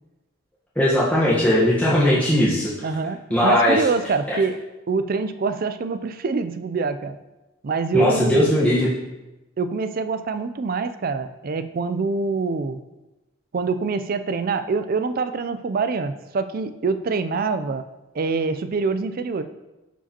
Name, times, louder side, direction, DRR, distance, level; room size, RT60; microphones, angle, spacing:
voice 1, 0.8-2.7 3.3-3.8 4.3-4.4 7.9-8.9, left 1 dB, 5° left, -9 dB, 1.1 m, -18 dB
voice 2, 2.8-4.6 4.9-7.2 7.6-8.5 9.6-12.8 13.5-17.8 18.1-19.4, right 4 dB, 45° right, 11 dB, 0.4 m, -25 dB
11.0 x 4.8 x 2.9 m, 1.0 s
head